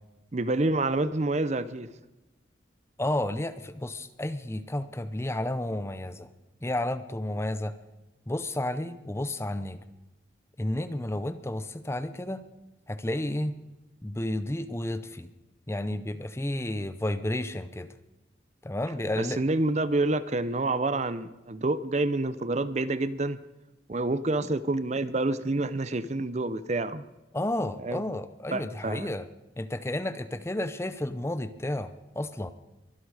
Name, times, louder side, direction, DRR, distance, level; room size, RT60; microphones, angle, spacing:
voice 1, 0.3-1.9 19.2-23.4 23.9-27.0 27.8-28.0 28.5-29.1, right 2 dB, 40° right, 15 dB, 0.6 m, -28 dB
voice 2, 3.0-6.3 6.6-7.7 8.3-9.8 10.6-12.4 12.9-13.5 14.0-15.3 15.7-17.9 18.6-19.5 27.3-29.3 29.6-32.5, left 1 dB, 15° left, 12 dB, 0.6 m, -31 dB
23.5 x 11.5 x 4.9 m, 1.0 s
head